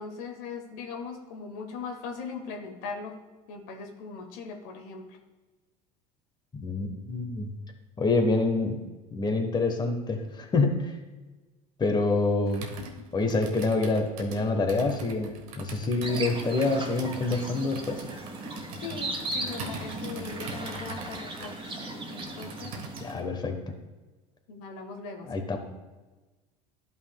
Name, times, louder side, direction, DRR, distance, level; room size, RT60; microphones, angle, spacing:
voice 1, 0.0-3.1 3.5-5.2 18.8-21.6 22.1-22.8 24.5-25.5, left 5 dB, 75° left, 3 dB, 1.1 m, -39 dB
voice 2, 6.6-7.5 8.0-8.8 9.1-10.9 11.8-12.7 13.1-18.0 23.0-23.6 25.3-25.6, left 3 dB, 25° left, 4 dB, 1.2 m, -26 dB
Computer keyboard, 12.5-23.2, right 3 dB, 80° right, 1.2 m, -43 dB
sound 1, 16.0-23.1, right 2 dB, 30° right, 1.8 m, -37 dB
11.5 x 5.5 x 2.3 m, 1.2 s
supercardioid pair, 90°, 18 cm